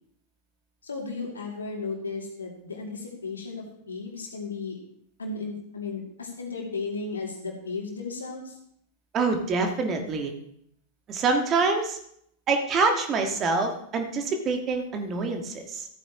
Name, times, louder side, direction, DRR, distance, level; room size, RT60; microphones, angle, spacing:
voice 1, 0.8-4.8 5.2-8.6, left 4 dB, 75° left, 0 dB, 2.4 m, -35 dB
voice 2, 9.1-10.3 11.1-12.0 12.5-15.9, right 4 dB, 30° right, 4 dB, 1.6 m, -26 dB
14.5 x 9.0 x 3.0 m, 0.69 s
figure-of-eight pair, 90°, 0 cm